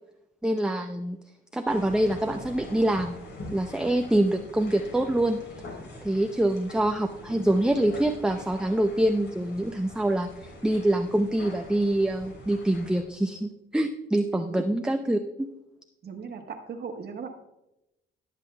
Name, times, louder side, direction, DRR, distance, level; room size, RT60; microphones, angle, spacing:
voice 1, 0.4-1.2 1.5-3.2 3.5-5.4 6.0-15.5, right 1 dB, 5° right, 5 dB, 0.5 m, -25 dB
sound 1, 1.7-13.0, left 2 dB, 65° left, 3.4 m, -44 dB
voice 2, 14.3-14.8 16.0-17.3, right 5 dB, 55° right, 4 dB, 1.3 m, -38 dB
19.0 x 7.4 x 2.2 m, 0.90 s
cardioid pair, 90°, 20 cm